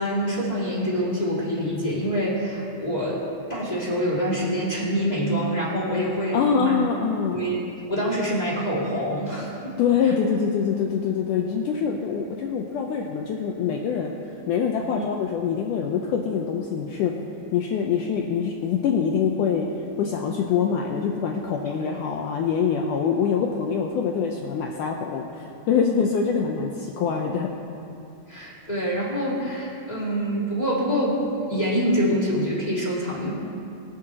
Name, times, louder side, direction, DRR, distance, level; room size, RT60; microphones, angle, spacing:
voice 1, 0.0-3.2 3.5-6.7 7.3-7.6 7.9-9.8 14.9-15.0 21.8-21.9 25.9-26.0 28.3-33.3, equal, 15° left, -6 dB, 1.7 m, -26 dB
voice 2, 6.3-7.4 9.8-14.1 14.5-17.1 17.5-19.7 20.0-27.5, left 6 dB, 85° left, 1 dB, 1.8 m, -24 dB
22.0 x 10.5 x 2.9 m, 2.6 s
omnidirectional pair, 4.5 m